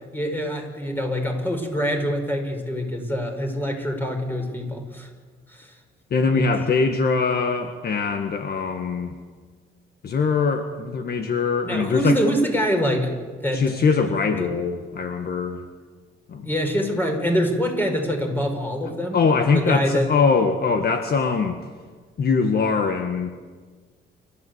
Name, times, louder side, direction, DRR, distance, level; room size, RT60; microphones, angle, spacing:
voice 1, 0.1-5.1 5.5-5.7 6.3-6.5 11.6-13.1 13.4-13.6 14.4-14.5 16.4-19.3 19.5-20.2, equal, 10° left, 3 dB, 5.2 m, -25 dB
voice 2, 6.1-9.1 10.0-12.2 13.5-15.7 16.3-16.5 19.1-21.6 22.2-23.3, left 5 dB, 50° left, 6 dB, 1.6 m, -22 dB
29.0 x 13.5 x 8.1 m, 1.5 s
cardioid pair, 90°, 20 cm